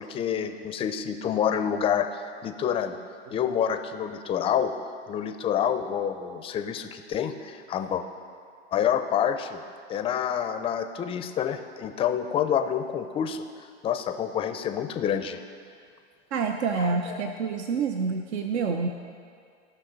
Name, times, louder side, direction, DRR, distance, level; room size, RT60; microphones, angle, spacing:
voice 1, 0.0-3.0 3.3-4.7 5.1-8.0 8.7-9.6 9.9-15.4 16.8-17.3, left 8 dB, 15° left, 8 dB, 0.4 m, -28 dB
voice 2, 16.3-18.9, right 5 dB, 80° right, 5 dB, 0.8 m, -27 dB
16.0 x 5.8 x 3.9 m, 2.2 s
hypercardioid pair, 130°, 33 cm